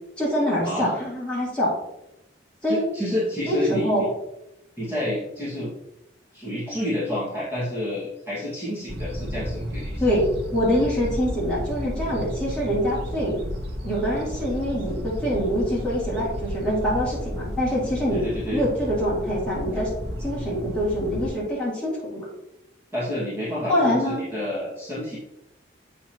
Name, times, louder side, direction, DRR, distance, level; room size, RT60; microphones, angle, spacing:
voice 1, 0.2-1.7 2.6-2.9 3.5-4.0 10.0-13.4 13.8-18.3 18.5-19.9 20.2-22.3 23.7-24.2, equal, 5° left, -8 dB, 2.4 m, -25 dB
voice 2, 2.7-4.1 4.8-5.7 6.3-10.0 12.1-12.2 18.1-18.7 19.7-19.8 22.9-25.2, left 1 dB, 15° right, -10 dB, 1.9 m, -29 dB
sound 1, 8.9-21.3, equal, 60° right, 0.9 m, -33 dB
7.3 x 5.6 x 3.0 m, 0.87 s
head